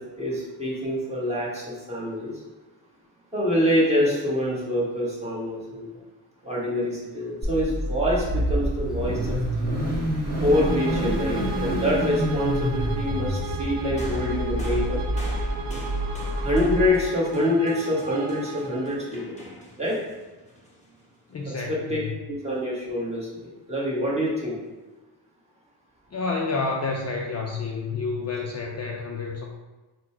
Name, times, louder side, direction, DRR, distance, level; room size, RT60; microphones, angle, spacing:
voice 1, 0.0-2.3 3.3-5.9 6.4-9.6 10.4-15.0 16.4-19.4 19.8-20.0 21.7-22.0 22.3-24.6, left 1 dB, 15° right, -7 dB, 1.5 m, -26 dB
Car / Idling / Accelerating revving vroom, 7.4-16.9, right 1 dB, 45° right, 1.5 m, -27 dB
Bowed string instrument, 10.5-19.0, right 4 dB, 75° right, 0.6 m, -36 dB
sound 1, 14.0-21.5 22.5-22.6, equal, 15° left, 1.0 m, -45 dB
voice 2, 21.3-22.2 26.1-29.4, left 4 dB, 40° left, 0 dB, 0.5 m, -29 dB
4.2 x 2.2 x 4.3 m, 1.2 s
cardioid pair, 90°, 42 cm